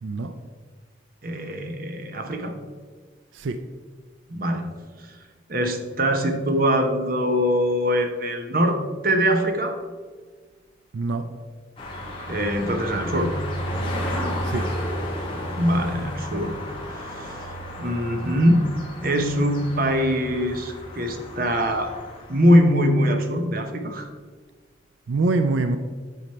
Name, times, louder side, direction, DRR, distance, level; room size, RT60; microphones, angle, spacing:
voice 1, 0.0-0.4 3.3-3.6 10.9-11.3 14.4-14.7 25.1-25.8, right 3 dB, 90° right, 9 dB, 0.5 m, -24 dB
voice 2, 1.2-2.5 4.3-4.7 5.5-8.8 9.0-9.7 12.3-13.3 15.5-16.6 16.9-17.5 17.8-18.7 19.0-21.9 22.3-24.1, equal, 50° right, 5 dB, 0.9 m, -22 dB
sound 1, 11.8-22.5, equal, 30° left, 1.8 m, -32 dB
9.4 x 5.2 x 4.3 m, 1.5 s
head